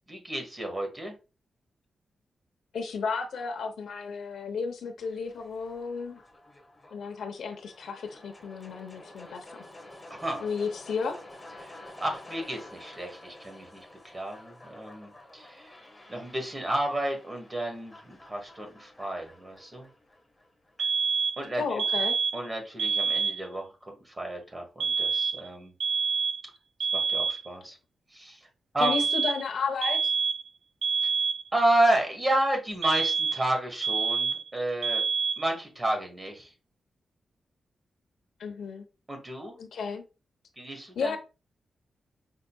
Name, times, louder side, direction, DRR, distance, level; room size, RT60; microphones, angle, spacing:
voice 1, 0.1-1.1 10.1-10.5 11.6-15.7 16.1-19.9 20.8-20.9 21.4-21.8 22.3-25.7 26.9-27.8 28.1-28.5 28.7-29.0 31.0-31.1 31.5-35.0 35.4-36.5 39.1-39.6 40.6-41.2, right 1 dB, 20° right, 1.3 m, -31 dB
voice 2, 2.7-6.2 6.9-9.6 10.4-11.2 21.6-22.1 28.8-30.1 38.4-38.9 39.6-40.0 41.0-41.2, left 5 dB, 85° left, 0.8 m, -33 dB
sound 1, 5.0-21.0, left 1 dB, 10° left, 1.3 m, -50 dB
sound 2, 20.8-21.5 21.8-22.5 22.8-23.5 24.8-25.5 25.8-26.5 26.8-27.5 28.8-29.5 29.8-30.5 30.8-31.5 32.8-33.5 33.8-34.5 34.8-35.5, right 5 dB, 70° right, 0.3 m, -27 dB
5.7 x 3.7 x 2.3 m
wide cardioid pair, 165°, 0 cm